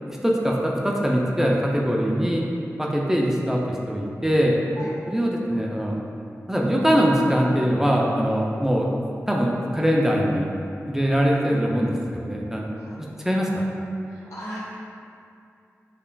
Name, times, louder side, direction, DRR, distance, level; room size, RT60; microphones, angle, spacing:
voice 1, 0.0-2.5 2.8-4.5 5.1-6.0 6.5-8.9 9.3-10.5 10.9-12.7 13.2-13.7, equal, 10° right, -2 dB, 0.4 m, -22 dB
voice 2, 4.8-4.9 11.4-11.6 12.8-13.0 14.3-14.6, equal, 70° left, -8 dB, 0.9 m, -36 dB
5.5 x 2.3 x 2.3 m, 2.5 s
cardioid pair, 50°, 5 cm